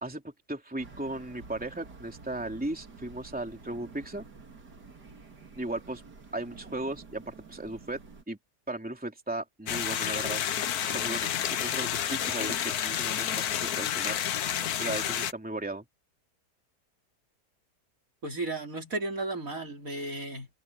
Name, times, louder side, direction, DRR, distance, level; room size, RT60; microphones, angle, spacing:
voice 1, 0.0-4.2 5.6-6.0 6.3-8.0 8.3-8.4 8.7-10.4 10.8-11.3 11.6-14.2 14.8-15.8, right 2 dB, 5° right, 2.9 m, -36 dB
sound 1, 0.8-8.2, right 4 dB, 75° right, 3.3 m, -50 dB
sound 2, 9.7-15.3, left 10 dB, 65° left, 1.4 m, -30 dB
voice 2, 18.2-20.5, right 2 dB, 55° right, 3.8 m, -34 dB
omnidirectional pair, 1.8 m